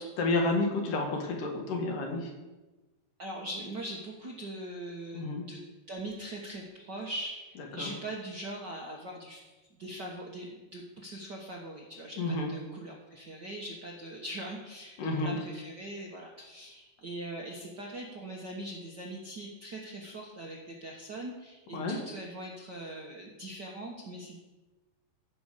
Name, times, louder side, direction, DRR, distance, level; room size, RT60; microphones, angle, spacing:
voice 1, 0.2-2.3 5.1-5.4 7.8-7.9 12.2-12.5 15.0-15.4 21.7-22.0, left 2 dB, 75° left, 1 dB, 3.4 m, -30 dB
voice 2, 3.2-5.2 5.5-5.6 5.9-9.4 9.8-24.4, right 1 dB, 55° right, -2 dB, 1.2 m, -41 dB
14.0 x 5.5 x 6.6 m, 1.1 s
omnidirectional pair, 3.9 m